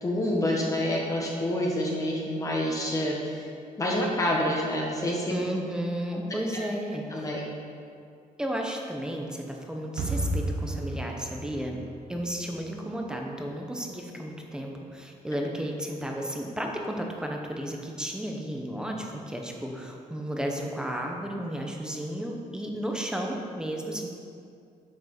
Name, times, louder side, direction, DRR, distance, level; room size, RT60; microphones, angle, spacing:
voice 1, 0.0-3.5 3.8-5.3 7.1-7.5 12.4-12.5, left 1 dB, 25° left, -3 dB, 1.4 m, -27 dB
voice 2, 5.3-7.3 8.4-11.8 12.1-24.1, equal, 5° right, 1 dB, 0.9 m, -33 dB
sound 1, 10.0-13.1, right 1 dB, 70° right, 1.5 m, -33 dB
9.1 x 6.1 x 6.0 m, 2.3 s
cardioid pair, 160°, 14 cm